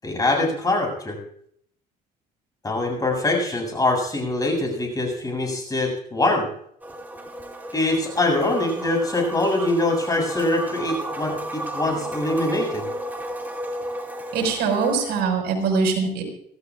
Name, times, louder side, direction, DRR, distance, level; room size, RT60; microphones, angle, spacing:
voice 1, 0.0-1.2 2.6-6.5 7.7-12.9, left 2 dB, 20° left, 2 dB, 7.6 m, -23 dB
sound 1, 6.8-15.2, right 1 dB, 10° right, 3.6 m, -33 dB
voice 2, 14.3-16.2, right 5 dB, 75° right, 2 dB, 5.6 m, -22 dB
25.5 x 16.0 x 2.5 m, 0.66 s
cardioid pair, 110°, 17 cm